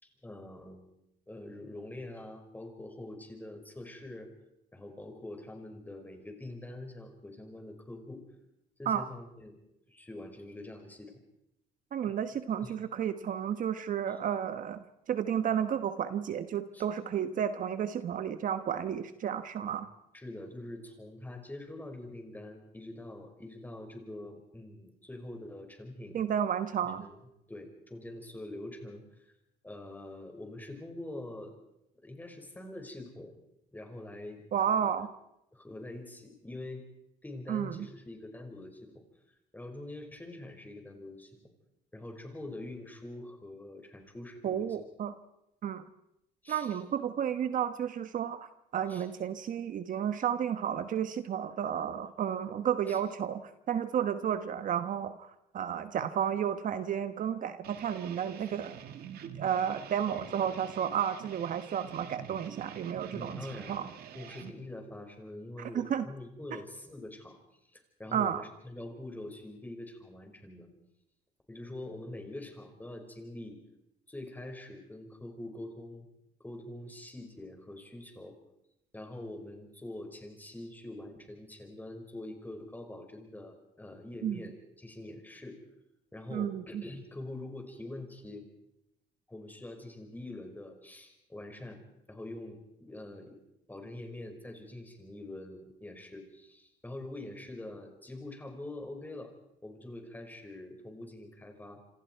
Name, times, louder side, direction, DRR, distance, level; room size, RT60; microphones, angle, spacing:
voice 1, 0.0-0.9 1.3-4.3 4.7-8.2 8.8-9.6 9.9-11.2 12.0-12.1 12.6-12.7 14.1-14.2 16.7-16.9 19.7-19.8 20.1-26.2 26.8-27.2 27.5-29.3 29.6-31.6 32.0-33.4 33.7-34.7 35.5-36.8 37.2-39.0 39.5-41.4 41.9-44.8 46.4-46.8 48.9-49.1 52.9-53.0 63.1-63.9 64.1-67.4 67.7-70.7 71.5-73.6 74.1-76.1 76.4-78.4 78.9-85.6 86.1-88.5 89.3-91.8 92.1-93.4 93.7-99.3 99.6-101.8, left 1 dB, 10° left, 4 dB, 5.3 m, -44 dB
voice 2, 11.9-19.9 26.1-27.1 34.5-35.1 37.5-37.9 44.4-45.1 45.6-45.8 46.5-58.8 59.2-63.4 63.7-63.9 65.6-66.0 66.5-66.6 68.1-68.4 84.2-84.4 86.3-86.8, right 9 dB, 50° right, 10 dB, 1.2 m, -32 dB
sound 1, 57.6-64.5, right 9 dB, 70° right, 2.1 m, -47 dB
27.0 x 26.5 x 4.6 m, 0.84 s
cardioid pair, 110°, 17 cm